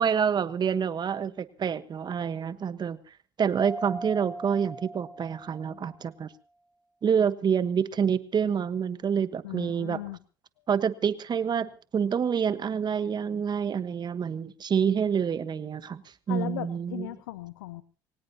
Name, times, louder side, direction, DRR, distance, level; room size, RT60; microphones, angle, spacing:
voice 1, 0.0-3.0 3.4-6.3 7.0-10.0 10.7-16.0 16.3-17.1, right 7 dB, 40° right, 14 dB, 1.3 m, -27 dB
Mallet percussion, 3.6-6.1, right 2 dB, ahead, 5.5 m, -40 dB
voice 2, 9.4-10.2 16.3-17.8, left 16 dB, 85° left, 15 dB, 0.7 m, -37 dB
23.0 x 18.5 x 2.9 m, 0.36 s
hypercardioid pair, 65°, 11 cm